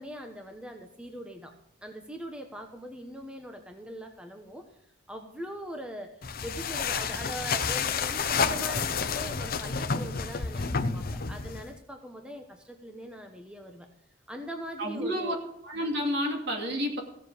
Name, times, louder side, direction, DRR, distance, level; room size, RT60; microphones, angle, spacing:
voice 1, 0.0-1.5 1.8-4.7 5.1-13.9 14.3-15.4, equal, 5° right, 3 dB, 1.0 m, -41 dB
sound 1, 6.2-11.8, left 5 dB, 50° left, 0.7 m, -30 dB
voice 2, 14.8-15.3 15.6-17.0, equal, 60° right, 1 dB, 2.7 m, -30 dB
16.0 x 7.5 x 5.0 m, 0.73 s
head